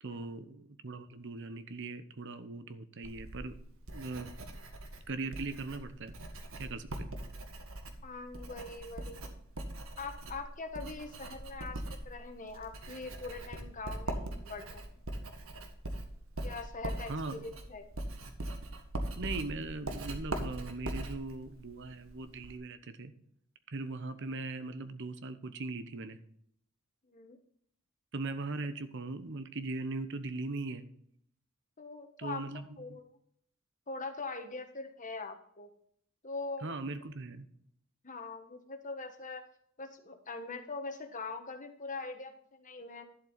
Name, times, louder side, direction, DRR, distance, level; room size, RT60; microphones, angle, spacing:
voice 1, 0.0-3.5 3.9-4.3 5.1-6.1 6.6-7.1 17.1-17.4 19.2-23.1 23.7-26.2 28.1-30.8 32.2-33.0 36.6-37.5, right 3 dB, 60° right, 11 dB, 0.9 m, -39 dB
Writing, 3.0-22.6, right 1 dB, 80° right, 1.5 m, -42 dB
voice 2, 8.0-9.2 10.0-14.8 16.4-17.9 27.1-27.4 31.8-32.4 32.8-33.1 33.9-35.7 36.2-36.7 38.0-39.4 39.8-43.0, left 3 dB, 40° left, 6 dB, 1.3 m, -42 dB
11.5 x 7.6 x 4.0 m, 0.67 s
head